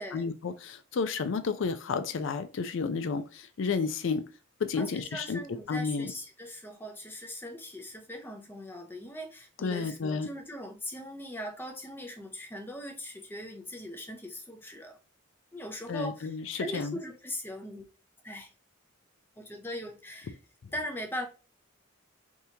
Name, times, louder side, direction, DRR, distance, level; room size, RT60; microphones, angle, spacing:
voice 1, 0.0-4.2 4.6-5.4 5.7-6.1 9.6-10.3 15.9-17.0, left 5 dB, 65° left, 0.4 m, -31 dB
voice 2, 4.8-15.0 15.5-17.9 18.2-18.5 19.4-20.4 20.7-21.3, left 1 dB, 10° left, 0.5 m, -40 dB
3.5 x 2.8 x 2.7 m
head